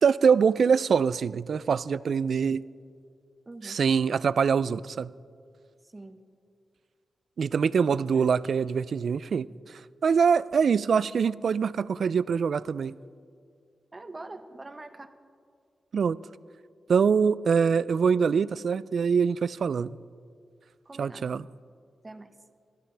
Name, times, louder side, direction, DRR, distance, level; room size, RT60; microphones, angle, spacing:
voice 1, 0.0-2.6 3.6-5.1 7.4-12.9 15.9-16.2 16.9-20.0 21.0-21.4, right 6 dB, 70° right, 18 dB, 0.3 m, -24 dB
voice 2, 3.5-3.8 5.8-6.2 8.1-8.3 13.9-15.1 20.8-21.4 22.0-22.4, right 2 dB, 30° right, 8 dB, 1.2 m, -44 dB
26.0 x 13.0 x 3.4 m, 2.2 s
cardioid pair, 55°, 0 cm